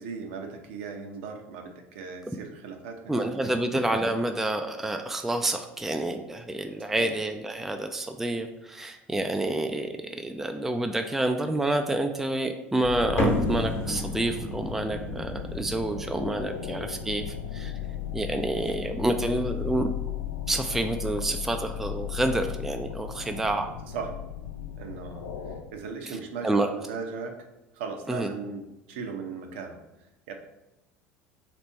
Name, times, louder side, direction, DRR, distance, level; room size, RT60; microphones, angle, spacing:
voice 1, 0.0-3.3 6.8-7.1 23.9-24.1 24.8-27.3 27.7-29.8 30.3-30.4, right 5 dB, 60° right, 4 dB, 0.6 m, -37 dB
voice 2, 3.1-17.7 18.1-19.9 20.5-23.7 26.4-26.7 28.1-28.3, right 1 dB, 5° right, 6 dB, 0.3 m, -28 dB
sound 1, 12.8-25.6, left 9 dB, 70° left, 0.4 m, -36 dB
sound 2, 13.2-19.9, equal, 35° left, 1.0 m, -34 dB
3.3 x 3.0 x 4.1 m, 0.94 s
figure-of-eight pair, 65°, 7 cm